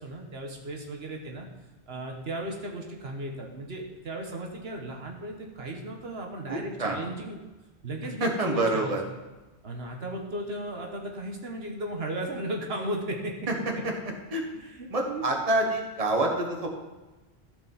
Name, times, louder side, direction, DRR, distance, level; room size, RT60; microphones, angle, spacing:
voice 1, 0.0-1.5 1.9-7.4 7.8-9.0 9.6-13.3 14.5-15.5, right 1 dB, 65° right, 1 dB, 1.4 m, -36 dB
voice 2, 6.5-7.0 8.2-9.0 13.5-13.6 13.8-13.9 14.3-14.4 14.9-16.7, right 2 dB, 35° right, 1 dB, 1.4 m, -27 dB
14.0 x 5.3 x 5.6 m, 1.1 s
omnidirectional pair, 1.1 m